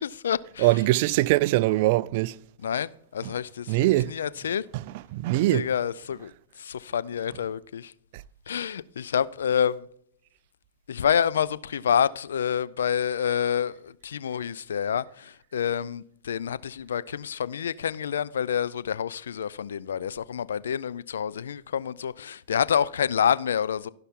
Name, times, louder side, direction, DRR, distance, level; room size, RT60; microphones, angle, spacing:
voice 1, 0.0-0.7 2.6-4.6 5.5-6.3 6.6-7.9 8.5-9.8 10.9-13.8 14.0-23.9, left 8 dB, 85° left, 0.4 m, -28 dB
voice 2, 0.6-2.4 3.2-3.3 3.7-4.1 4.7-5.7, right 18 dB, 55° right, 0.3 m, -22 dB
15.5 x 5.7 x 3.6 m
hypercardioid pair, 125°, 0 cm